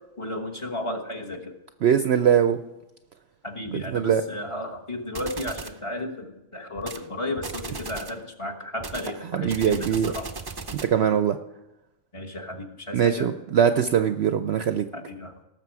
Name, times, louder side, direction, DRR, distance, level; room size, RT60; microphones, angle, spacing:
voice 1, 0.2-1.5 3.4-10.3 12.1-13.3 14.9-15.4, left 1 dB, 25° left, 3 dB, 1.3 m, -34 dB
voice 2, 1.8-2.6 3.7-4.2 9.3-10.1 10.8-11.4 12.9-14.8, right 8 dB, 65° right, 9 dB, 0.7 m, -21 dB
sound 1, 5.1-5.8 6.8-7.1 7.4-8.2 8.8-11.0, right 4 dB, 35° right, 0.3 m, -37 dB
18.5 x 7.0 x 4.7 m, 0.99 s
omnidirectional pair, 1.4 m